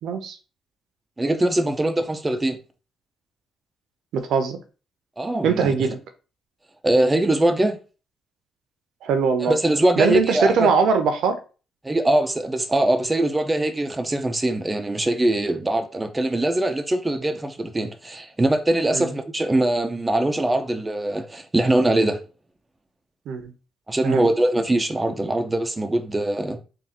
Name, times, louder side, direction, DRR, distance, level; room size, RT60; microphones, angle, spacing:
voice 1, 0.0-0.4 4.1-4.6 5.4-6.0 9.0-9.5 10.0-11.4 18.9-19.1 23.3-23.5 24.0-24.3, right 5 dB, 80° right, 0.8 m, -21 dB
voice 2, 1.2-2.6 5.2-5.7 6.8-7.8 9.4-10.7 11.8-22.2 23.9-26.6, right 1 dB, 15° right, 0.6 m, -22 dB
3.8 x 2.5 x 4.3 m
cardioid pair, 90°, 0 cm